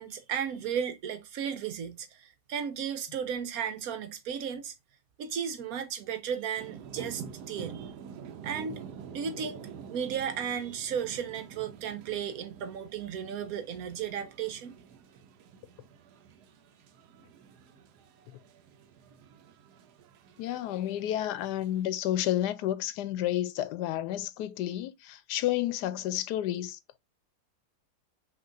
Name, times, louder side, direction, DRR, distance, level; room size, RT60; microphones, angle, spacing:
voice 1, 0.0-4.7 5.2-7.9 8.4-8.8 9.1-14.7, right 8 dB, 65° right, 1.2 m, -34 dB
sound 1, 6.6-21.8, right 7 dB, 85° right, 1.2 m, -48 dB
voice 2, 20.4-27.0, left 12 dB, 90° left, 1.2 m, -31 dB
5.8 x 3.0 x 2.5 m
omnidirectional pair, 1.7 m